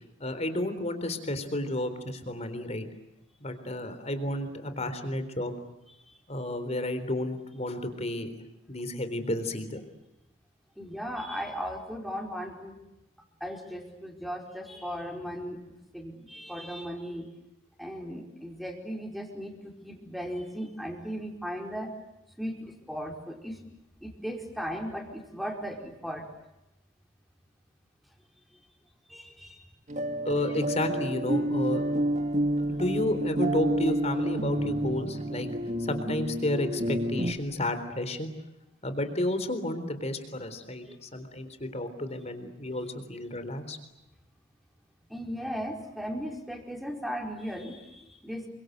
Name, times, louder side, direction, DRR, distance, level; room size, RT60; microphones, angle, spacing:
voice 1, 0.2-2.9 3.4-5.5 6.3-8.3 8.7-9.8 30.2-31.8 32.7-35.5 35.8-38.3 38.8-43.8, left 1 dB, 30° left, 10 dB, 3.9 m, -31 dB
voice 2, 10.8-12.8 13.4-15.6 15.9-17.3 17.8-21.9 22.4-23.6 24.0-26.3 29.1-29.7 40.8-41.0 45.1-48.5, equal, ahead, 2 dB, 4.7 m, -37 dB
sound 1, 29.9-37.3, right 1 dB, 35° right, 2.0 m, -29 dB
29.0 x 25.0 x 8.1 m, 0.91 s
head